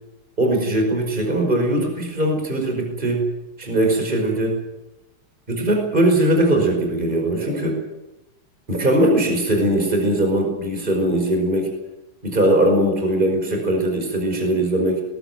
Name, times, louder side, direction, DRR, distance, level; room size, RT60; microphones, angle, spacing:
voice 1, 0.4-3.3 3.6-4.6 5.5-7.8 8.7-11.7 12.2-15.0, right 1 dB, 20° right, 2 dB, 5.3 m, -20 dB
21.0 x 17.0 x 9.2 m, 0.97 s
omnidirectional pair, 2.3 m